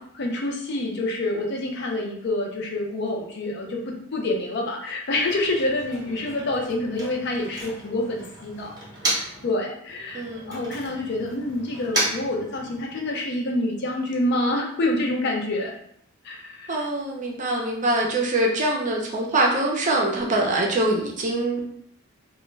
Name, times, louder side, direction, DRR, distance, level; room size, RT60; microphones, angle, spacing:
voice 1, 0.1-8.7 9.1-10.2 10.5-15.7 16.2-16.8, left 2 dB, 55° left, 1 dB, 0.5 m, -27 dB
Motor vehicle (road), 5.1-9.5 9.8-13.1, right 1 dB, 20° right, 0.8 m, -33 dB
voice 2, 10.1-10.6 16.7-21.6, right 1 dB, 40° right, 0 dB, 0.5 m, -24 dB
2.2 x 2.1 x 3.1 m, 0.66 s
head